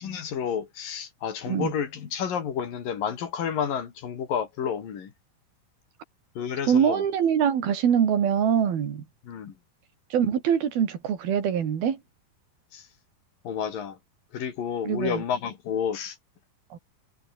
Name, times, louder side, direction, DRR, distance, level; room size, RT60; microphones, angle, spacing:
voice 1, 0.0-5.1 6.4-7.0 9.2-9.5 12.7-12.9 13.4-14.0 14.3-16.2, left 7 dB, 65° left, 4.3 m, -30 dB
voice 2, 6.7-9.0 10.1-12.0 14.8-15.2 16.7-16.8, right 8 dB, 75° right, 4.7 m, -24 dB
omnidirectional pair, 4.3 m